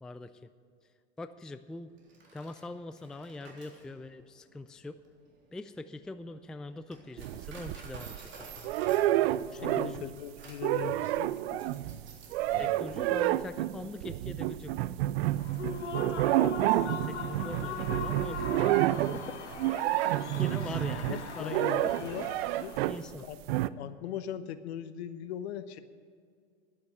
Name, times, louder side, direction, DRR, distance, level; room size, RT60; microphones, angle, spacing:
voice 1, 0.0-0.5 1.2-1.9 2.3-5.0 5.5-8.7 9.5-10.2 12.6-15.0 16.8-18.5 19.9-21.9 22.9-23.3, left 2 dB, ahead, 11 dB, 0.3 m, -43 dB
Coin (dropping), 2.0-12.5, right 3 dB, 35° right, 3.7 m, -52 dB
sound 1, 7.2-8.3 8.6-10.1 10.4-23.1 23.5-23.7, right 14 dB, 65° right, 0.5 m, -29 dB
voice 2, 9.6-11.7 11.9-12.0 12.5-12.7 19.0-19.2 21.1-22.2 22.6-22.8 23.1-23.4 23.8-25.8, left 10 dB, 70° left, 12 dB, 0.9 m, -40 dB
Human voice / Cheering / Applause, 15.3-23.0, left 6 dB, 85° left, 1.2 m, -41 dB
11.0 x 8.6 x 9.0 m, 2.1 s
hypercardioid pair, 90°, 34 cm